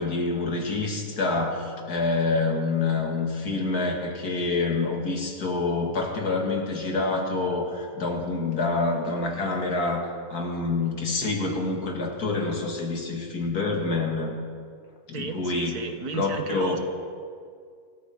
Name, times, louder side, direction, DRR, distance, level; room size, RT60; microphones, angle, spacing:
voice 1, 0.0-14.4 15.1-15.9 16.1-16.8, left 3 dB, 90° left, 1 dB, 2.6 m, -27 dB
voice 2, 15.1-16.8, right 5 dB, 85° right, 6 dB, 1.7 m, -34 dB
26.0 x 13.0 x 3.7 m, 2.1 s
omnidirectional pair, 1.6 m